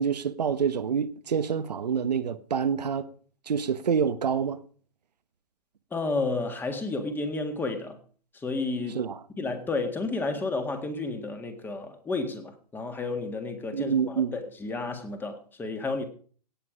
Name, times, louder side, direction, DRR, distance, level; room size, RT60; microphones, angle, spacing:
voice 1, 0.0-3.1 3.5-4.6 8.9-9.2 13.7-14.4, right 7 dB, 75° right, 1.1 m, -27 dB
voice 2, 5.9-8.0 8.4-9.0 9.4-16.0, left 3 dB, 10° left, 1.7 m, -31 dB
17.5 x 7.8 x 5.0 m
hypercardioid pair, 135°, 21 cm